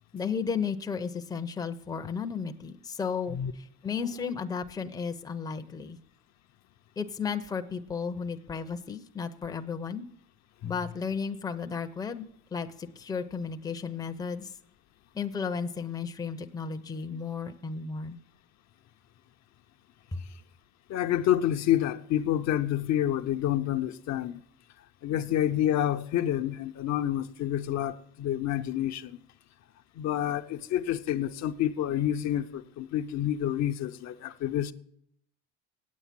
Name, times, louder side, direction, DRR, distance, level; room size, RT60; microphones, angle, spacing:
voice 1, 0.1-6.0 7.0-10.0 10.6-12.3 12.5-14.5 15.1-18.2 20.1-20.2, left 6 dB, 10° left, 0.6 m, -34 dB
voice 2, 20.9-24.4 25.0-29.2 30.0-34.7, left 11 dB, 55° left, 0.6 m, -28 dB
8.8 x 8.4 x 7.4 m
cardioid pair, 130°, 34 cm